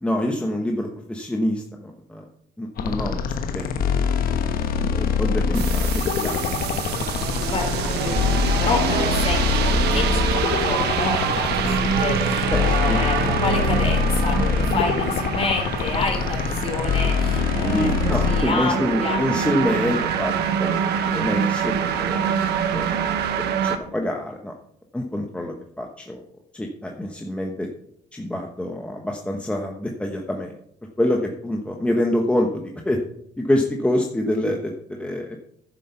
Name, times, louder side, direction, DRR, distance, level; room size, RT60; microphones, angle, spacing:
voice 1, 0.0-2.3 2.6-3.2 3.5-3.7 4.8-6.4 12.5-12.6 12.9-13.0 17.6-20.8 21.0-22.2 22.7-24.5 24.9-26.2 26.5-27.7 28.1-30.5 31.0-33.0 33.4-35.4, left 1 dB, 5° left, 2 dB, 1.1 m, -26 dB
sound 1, 2.8-18.4, left 6 dB, 60° left, 1.2 m, -24 dB
long rise, 5.5-23.8, right 8 dB, 75° right, 1.2 m, -25 dB
voice 2, 7.5-19.2, left 4 dB, 35° left, 2 dB, 3.8 m, -29 dB
10.5 x 7.2 x 5.7 m, 0.70 s
cardioid pair, 110°, 17 cm